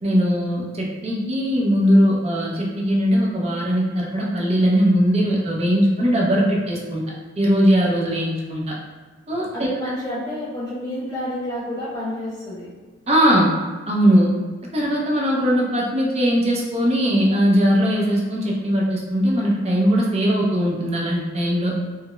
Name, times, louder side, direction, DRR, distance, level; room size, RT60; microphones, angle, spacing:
voice 1, 0.0-7.0 7.4-8.6 9.3-9.7 13.1-13.6 13.9-14.3 14.7-21.7, equal, 30° right, -3 dB, 0.5 m, -19 dB
voice 2, 9.5-12.7, left 1 dB, 15° left, -10 dB, 1.1 m, -29 dB
4.8 x 2.0 x 2.2 m, 1.3 s
head